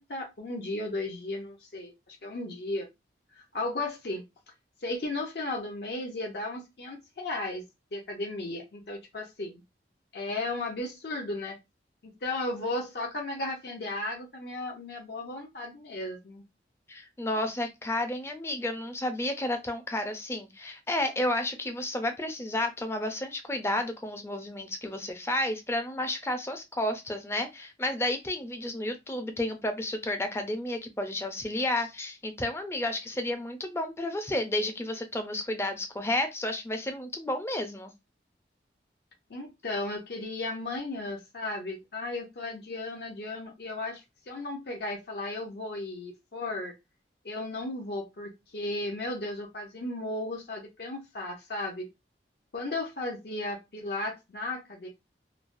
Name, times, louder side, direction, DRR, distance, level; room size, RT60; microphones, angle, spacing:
voice 1, 0.0-2.9 3.5-4.2 4.8-7.6 7.9-9.6 10.1-11.6 12.0-16.4 39.3-46.7 47.2-51.9 52.5-54.9, left 2 dB, 65° left, 1 dB, 0.6 m, -35 dB
voice 2, 16.9-37.9, left 1 dB, 15° left, 6 dB, 0.4 m, -31 dB
3.1 x 2.0 x 2.5 m, 0.21 s
head